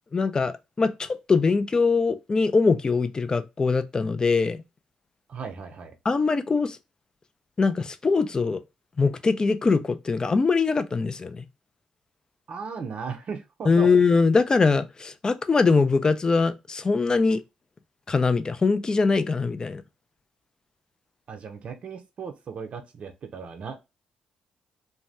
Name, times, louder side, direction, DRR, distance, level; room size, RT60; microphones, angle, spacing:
voice 1, 0.1-4.6 6.0-6.8 7.6-8.6 9.0-11.4 13.7-17.4 18.1-19.8, left 4 dB, 30° left, 0.4 m, -22 dB
voice 2, 5.3-5.9 12.5-13.9 21.3-23.8, right 5 dB, 55° right, 0.6 m, -36 dB
2.6 x 2.2 x 3.3 m
supercardioid pair, 65°, 2 cm